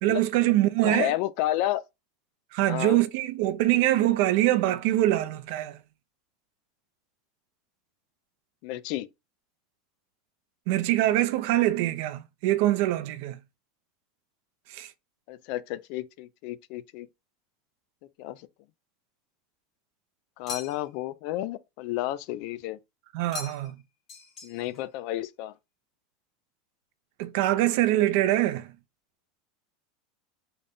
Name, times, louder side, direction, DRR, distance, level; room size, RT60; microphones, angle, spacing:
voice 1, 0.0-1.1 2.5-5.8 10.7-13.4 14.7-14.9 23.1-23.8 27.2-28.7, right 15 dB, 60° right, 0.4 m, -24 dB
voice 2, 0.8-1.8 2.7-3.0 8.6-9.1 15.3-17.1 18.2-18.4 20.4-22.8 24.4-25.5, left 15 dB, 50° left, 0.3 m, -31 dB
sound 1, 20.5-21.1 23.3-23.8 24.1-24.8, left 5 dB, 30° left, 1.2 m, -41 dB
3.9 x 2.1 x 3.5 m
supercardioid pair, 155°, 0 cm